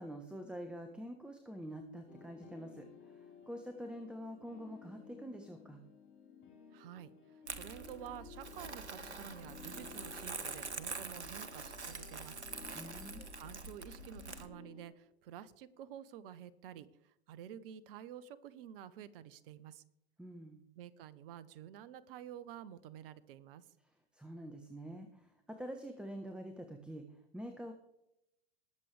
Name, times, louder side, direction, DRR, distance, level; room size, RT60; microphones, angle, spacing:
voice 1, 0.0-5.8 12.7-13.3 20.2-20.6 24.1-27.1 27.3-27.7, equal, 5° right, 5 dB, 1.3 m, -46 dB
sound 1, 2.1-14.9, left 7 dB, 35° left, 4.7 m, -56 dB
voice 2, 6.7-12.5 13.3-19.8 20.8-23.6, right 10 dB, 55° right, 17 dB, 1.0 m, -50 dB
Crumpling crinkling, 7.5-14.5, right 4 dB, 90° right, 1.2 m, -45 dB
20.5 x 7.7 x 3.4 m, 0.82 s
hypercardioid pair, 95°, 33 cm